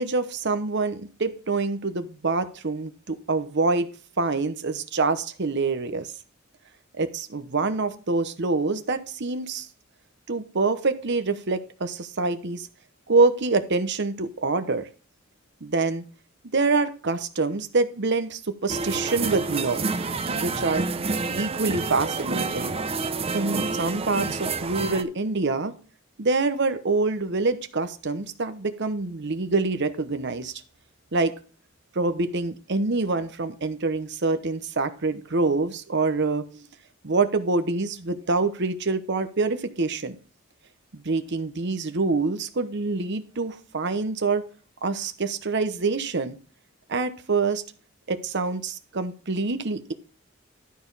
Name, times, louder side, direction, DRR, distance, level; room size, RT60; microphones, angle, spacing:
voice 1, 0.0-3.9 4.2-6.1 7.0-9.7 10.3-12.7 13.1-14.9 15.6-16.0 16.5-19.8 20.4-20.8 21.3-22.7 23.3-25.7 26.2-30.5 31.1-31.3 31.9-36.6 37.0-40.2 40.9-44.4 44.8-46.4 46.9-47.6 48.1-49.9, right 3 dB, 55° right, 10 dB, 1.0 m, -26 dB
sound 1, 18.7-25.0, right 3 dB, 30° right, 0.6 m, -28 dB
12.5 x 4.3 x 5.5 m, 0.38 s
head